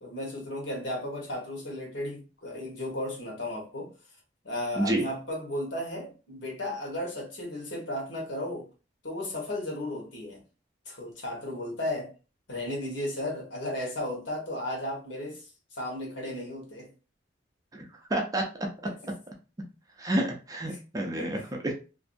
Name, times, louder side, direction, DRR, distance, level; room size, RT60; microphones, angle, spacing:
voice 1, 0.0-3.9 4.4-8.7 9.0-10.4 10.8-12.1 12.5-16.9 18.8-19.0 20.7-21.4, left 1 dB, 70° left, 1.1 m, -35 dB
voice 2, 4.8-5.1 17.7-18.4 20.0-21.7, right 1 dB, 20° right, 0.4 m, -29 dB
2.5 x 2.3 x 2.5 m
head